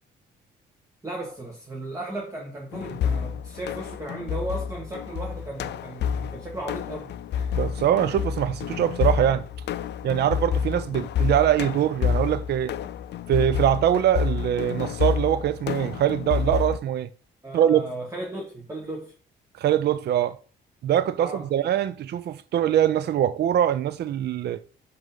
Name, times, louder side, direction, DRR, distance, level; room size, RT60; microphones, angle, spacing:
voice 1, 1.0-7.5 17.4-19.1 21.2-21.5, right 2 dB, 15° right, 1.4 m, -35 dB
sound 1, 2.7-16.8, left 8 dB, 60° left, 0.4 m, -29 dB
voice 2, 7.6-9.4 10.0-12.7 13.3-17.1 17.5-17.8 19.6-20.4 20.8-24.6, right 10 dB, 55° right, 0.5 m, -23 dB
5.5 x 5.0 x 3.9 m
cardioid pair, 90°, 20 cm